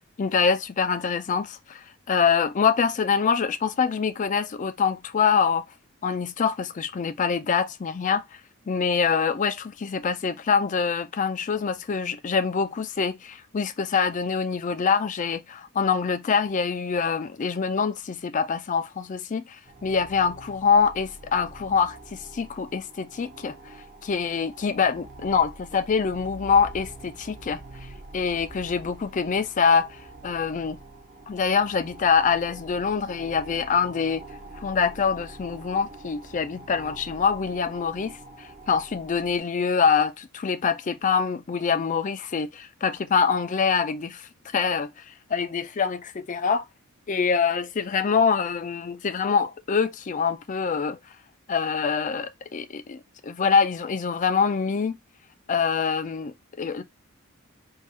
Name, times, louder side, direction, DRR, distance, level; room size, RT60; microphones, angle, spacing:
voice 1, 0.2-5.6 6.0-8.2 8.7-23.5 24.0-27.6 28.1-30.0 30.2-30.8 31.3-34.2 34.6-38.2 38.7-46.7 47.1-51.0 51.5-55.0 55.5-56.8, left 6 dB, 35° left, 0.4 m, -25 dB
sound 1, 19.6-39.4, right 2 dB, 35° right, 0.6 m, -45 dB
3.7 x 2.3 x 4.1 m
head